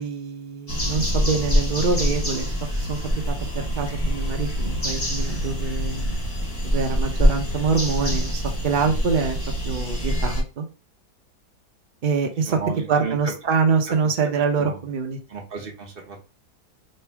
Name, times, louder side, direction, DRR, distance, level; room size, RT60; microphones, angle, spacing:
voice 1, 0.0-2.5 2.8-3.0 3.3-3.4 3.8-6.2 6.6-9.4 9.7-10.7 12.0-12.6 12.9-15.2, right 5 dB, 75° right, 3 dB, 0.4 m, -25 dB
sound 1, 0.7-10.4, equal, 25° left, 0.9 m, -25 dB
voice 2, 12.5-13.3 13.9-14.0 14.6-14.9 15.3-16.2, right 5 dB, 40° right, 1 dB, 1.0 m, -34 dB
3.2 x 2.6 x 4.5 m, 0.32 s
omnidirectional pair, 1.7 m